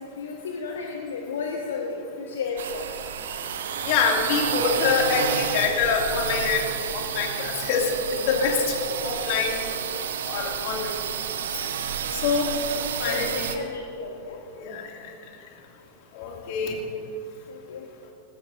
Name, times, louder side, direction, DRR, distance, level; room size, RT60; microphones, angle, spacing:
voice 1, 0.0-2.9 8.3-8.5 11.7-11.8 12.6-14.4 17.5-17.8, left 5 dB, 65° left, 1 dB, 1.1 m, -33 dB
sound 1, 2.6-13.5, right 7 dB, 60° right, 0.9 m, -30 dB
voice 2, 3.8-8.8 9.0-9.7 10.3-11.0 12.1-12.5 13.0-13.6 14.6-15.1 16.1-16.8, left 5 dB, 45° left, 0 dB, 2.3 m, -25 dB
20.0 x 16.5 x 2.6 m, 2.7 s
figure-of-eight pair, 90°, 0 cm